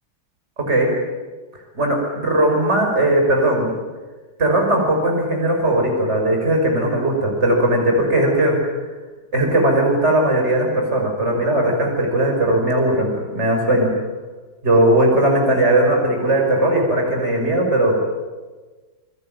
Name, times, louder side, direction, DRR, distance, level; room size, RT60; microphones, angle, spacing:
voice 1, 1.8-3.7 4.4-8.6 9.3-13.9 14.6-18.0, right 1 dB, 35° right, 1 dB, 6.3 m, -18 dB
29.5 x 21.0 x 9.4 m, 1.3 s
omnidirectional pair, 2.1 m